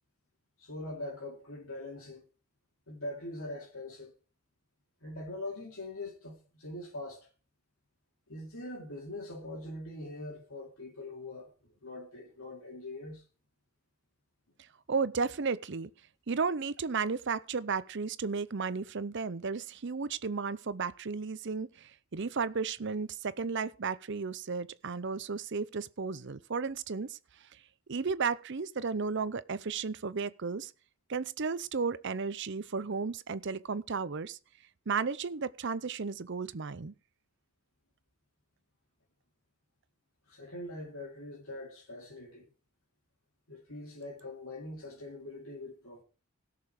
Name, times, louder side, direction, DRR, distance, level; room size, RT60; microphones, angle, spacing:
voice 1, 0.6-2.3 2.9-4.1 5.0-7.3 8.3-13.2 40.3-42.5 43.5-46.0, left 2 dB, 70° left, 3.7 m, -43 dB
voice 2, 14.9-15.9 16.3-27.2 27.9-30.7 31.1-34.4 34.9-36.9, right 5 dB, 55° right, 0.6 m, -34 dB
17.0 x 6.7 x 4.9 m
head